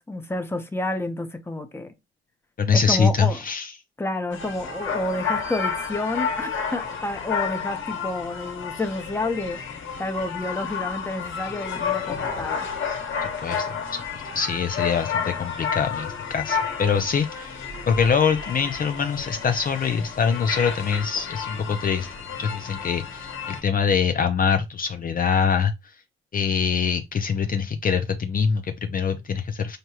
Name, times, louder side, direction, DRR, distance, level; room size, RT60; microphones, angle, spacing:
voice 1, 0.0-1.9 2.9-3.4 4.0-9.6 10.0-12.7, left 2 dB, 10° left, 0.8 m, -29 dB
voice 2, 2.6-3.7 13.4-13.7 14.3-17.6 17.9-22.1 22.4-25.7 26.3-29.8, left 6 dB, 45° left, 0.5 m, -24 dB
sound 1, 4.3-23.6, left 6 dB, 75° left, 1.5 m, -31 dB
6.5 x 2.2 x 2.8 m
cardioid pair, 120°, 21 cm